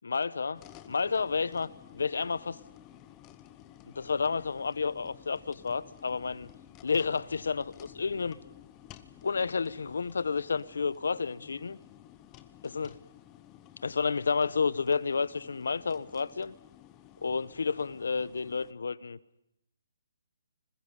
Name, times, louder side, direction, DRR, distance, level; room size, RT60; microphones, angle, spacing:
voice 1, 0.0-0.6 0.9-2.6 4.0-6.5 6.8-8.4 9.2-11.8 12.6-13.0 13.8-16.5 17.2-19.2, left 5 dB, 75° left, 1.0 m, -30 dB
sound 1, 0.5-18.7, left 12 dB, 15° left, 0.9 m, -53 dB
29.5 x 21.0 x 5.4 m
hypercardioid pair, 165°, 0 cm